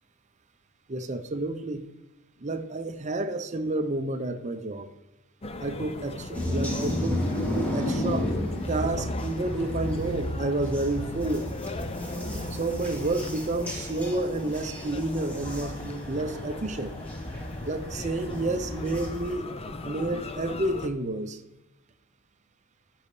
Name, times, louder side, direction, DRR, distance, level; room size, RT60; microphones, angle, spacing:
voice 1, 0.9-1.9 2.4-4.9 5.6-7.2 7.5-8.4 8.7-11.5 12.5-16.9 17.6-19.5 19.8-21.4, right 2 dB, 35° right, 0.6 m, -30 dB
sound 1, 5.4-20.9, left 2 dB, 25° left, 0.4 m, -39 dB
sound 2, 6.3-19.3, left 1 dB, 5° left, 1.6 m, -33 dB
13.5 x 5.5 x 3.2 m
head